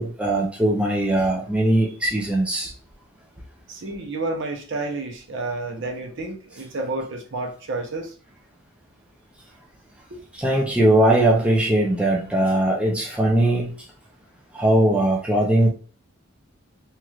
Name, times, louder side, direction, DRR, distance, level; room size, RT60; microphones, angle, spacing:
voice 1, 0.0-2.7 10.3-13.7 14.5-15.7, right 1 dB, 5° right, -2 dB, 0.4 m, -20 dB
voice 2, 3.7-8.1 10.1-10.2, right 2 dB, 55° right, 3 dB, 0.6 m, -30 dB
3.0 x 2.9 x 2.4 m, 0.40 s
head